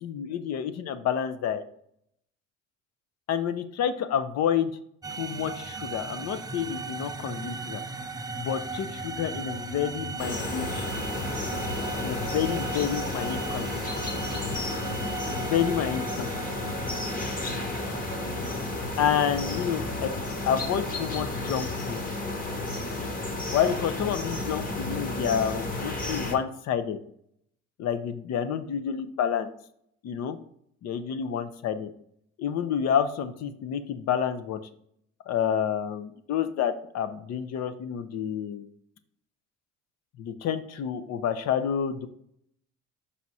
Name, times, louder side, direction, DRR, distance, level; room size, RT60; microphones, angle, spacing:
voice 1, 0.0-1.6 3.3-4.7 5.2-7.8 8.4-10.9 12.0-13.7 15.3-16.3 19.0-20.1 20.5-22.0 23.5-27.0 27.8-29.5 30.0-30.4 30.8-31.9 32.4-34.6 35.3-38.7 40.2-42.1, left 8 dB, 60° left, 11 dB, 0.8 m, -29 dB
sound 1, 5.0-23.0, right 3 dB, 15° right, 0.5 m, -38 dB
sound 2, 10.2-26.4, left 2 dB, 30° left, 1.4 m, -32 dB
5.7 x 4.8 x 4.1 m, 0.69 s
cardioid pair, 100°, 29 cm